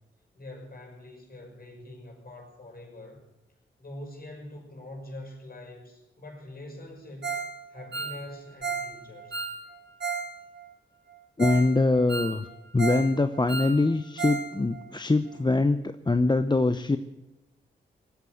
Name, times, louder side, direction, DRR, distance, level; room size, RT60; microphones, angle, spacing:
voice 1, 0.3-3.2 3.8-7.4 7.7-9.5, left 1 dB, 45° left, 2 dB, 6.4 m, -44 dB
Ringtone, 7.2-7.5 7.8-10.3 10.6-10.7 11.1-11.2 11.4-11.7 11.9-13.1 13.3-14.5 14.7-14.8 15.3-15.4, right 5 dB, 60° right, 3.6 m, -33 dB
voice 2, 11.4-12.5 12.7-17.0, left 2 dB, 20° left, 10 dB, 0.8 m, -23 dB
19.0 x 9.2 x 7.8 m, 0.96 s
supercardioid pair, 40°, 21 cm